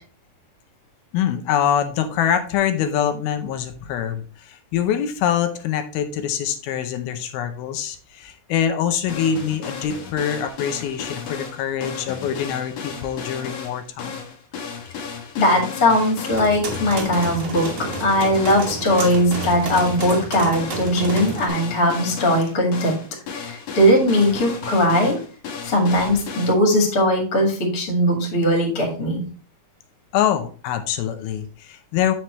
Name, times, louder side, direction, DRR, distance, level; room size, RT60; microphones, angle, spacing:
voice 1, 1.1-14.1 30.1-32.1, left 9 dB, 85° left, 7 dB, 2.6 m, -24 dB
sound 1, 9.1-26.5, left 6 dB, 60° left, 1.9 m, -34 dB
voice 2, 15.4-17.7 18.0-23.0 23.3-25.2 25.6-29.2, equal, 30° left, 1 dB, 2.0 m, -19 dB
sound 2, 16.3-21.5, right 3 dB, 70° right, 1.0 m, -31 dB
8.0 x 5.9 x 3.2 m, 0.38 s
omnidirectional pair, 4.3 m